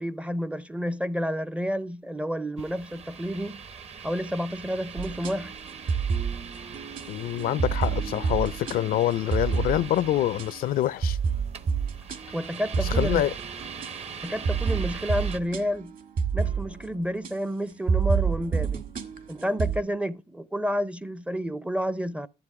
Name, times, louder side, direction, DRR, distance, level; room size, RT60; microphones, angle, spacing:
voice 1, 0.0-3.6 4.0-5.5 12.3-13.3 14.2-15.9 16.3-18.8 19.3-22.3, equal, 5° right, 0.5 m, -30 dB
sound 1, 2.6-15.4, right 6 dB, 40° right, 0.8 m, -42 dB
sound 2, 5.0-10.6 11.0-17.3 17.7-19.8, right 6 dB, 55° right, 1.8 m, -29 dB
voice 2, 7.1-11.2 12.8-13.3, left 13 dB, 60° left, 0.5 m, -26 dB
12.0 x 7.4 x 4.7 m
cardioid pair, 110°, 17 cm